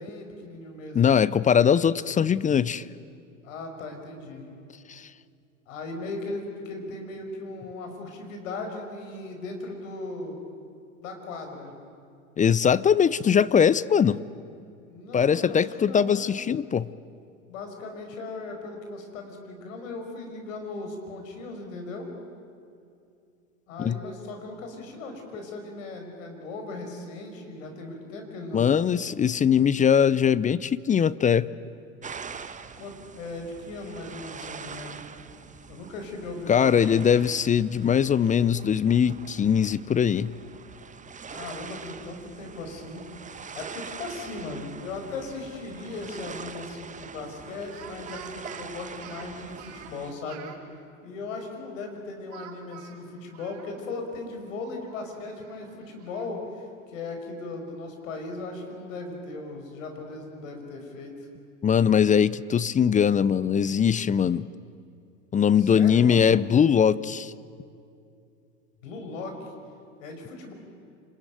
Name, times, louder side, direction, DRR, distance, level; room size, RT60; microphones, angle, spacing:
voice 1, 0.0-1.0 3.4-4.4 5.7-10.4 11.0-11.7 14.9-16.3 17.5-22.1 23.7-28.8 32.8-35.0 35.7-37.0 41.3-43.1 43.5-50.5 51.0-61.1 65.6-66.4 68.8-69.4 70.0-70.5, left 3 dB, 75° left, 4 dB, 5.4 m, -38 dB
voice 2, 0.9-2.8 4.9-5.0 12.4-14.2 15.1-16.9 23.8-24.0 28.5-31.5 36.5-40.3 61.6-64.5 65.3-67.3, left 7 dB, 20° left, 18 dB, 0.6 m, -21 dB
sound 1, 32.0-50.1, right 6 dB, 20° right, 1.2 m, -43 dB
Speech, 45.9-46.5 47.6-50.6 52.3-54.0 54.4-54.5 54.9-56.3, right 9 dB, 50° right, 4.1 m, -47 dB
28.0 x 20.5 x 9.3 m, 2.5 s
hypercardioid pair, 90°, 39 cm